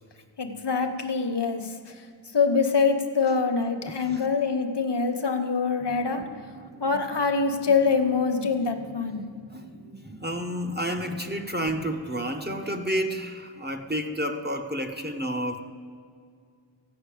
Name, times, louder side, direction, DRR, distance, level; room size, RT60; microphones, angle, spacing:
voice 1, 0.4-1.9 2.3-6.3 6.8-9.2, left 5 dB, 55° left, 5 dB, 1.1 m, -25 dB
voice 2, 3.9-4.2 9.5-9.6 10.0-15.6, equal, 20° right, 4 dB, 0.9 m, -30 dB
sound 1, 5.8-12.5, right 1 dB, 45° right, 2.0 m, -47 dB
14.5 x 5.7 x 8.5 m, 2.2 s
wide cardioid pair, 50°, 48 cm